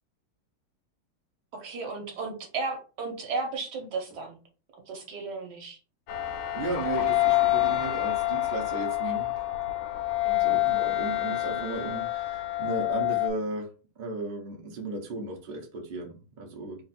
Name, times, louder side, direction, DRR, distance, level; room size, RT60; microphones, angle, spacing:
voice 1, 1.5-4.4 4.9-5.8 10.2-10.6, right 4 dB, 60° right, 2 dB, 1.5 m, -34 dB
sound 1, 6.1-13.3, left 16 dB, 80° left, 1.4 m, -27 dB
voice 2, 6.2-9.3 10.4-16.8, right 2 dB, 40° right, 0 dB, 0.7 m, -35 dB
3.5 x 2.5 x 4.2 m, 0.34 s
omnidirectional pair, 2.2 m